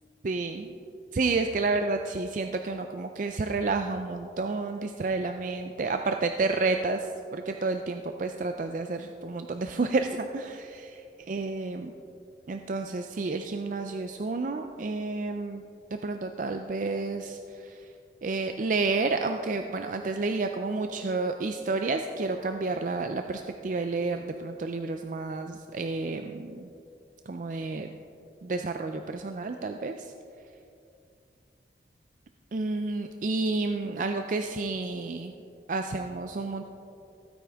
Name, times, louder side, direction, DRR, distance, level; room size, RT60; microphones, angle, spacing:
voice 1, 0.2-0.7 1.1-10.7 11.3-11.9 12.5-15.6 15.9-17.8 18.2-26.7 27.3-27.9 28.4-30.1 32.5-35.3 35.7-36.6, right 3 dB, 45° right, 6 dB, 0.4 m, -30 dB
15.5 x 9.4 x 3.5 m, 2.6 s
head